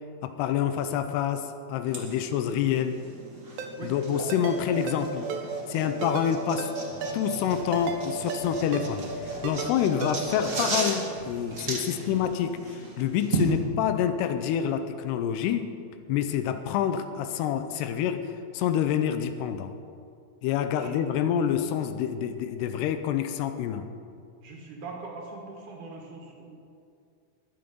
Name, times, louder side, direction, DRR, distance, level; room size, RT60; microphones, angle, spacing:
voice 1, 0.2-3.0 3.8-5.3 5.7-6.7 7.1-15.7 16.1-19.7 20.4-23.9, left 9 dB, 85° left, 9 dB, 2.7 m, -27 dB
sound 1, 1.9-13.5, right 3 dB, 35° right, 1.2 m, -34 dB
Ringtone, 3.6-3.7 4.3-4.6 4.9-5.0 5.3-5.4 6.0-6.3 6.6-6.7 7.0-7.2 7.7-8.0 8.3-8.4 8.7-8.9 9.4-9.7 10.0-10.1, right 7 dB, 85° right, 1.7 m, -34 dB
sound 2, 6.9-12.2, left 2 dB, 50° left, 1.3 m, -47 dB
voice 2, 24.4-26.6, right 3 dB, 60° right, 0 dB, 2.7 m, -42 dB
21.5 x 7.8 x 5.3 m, 2.4 s
omnidirectional pair, 4.8 m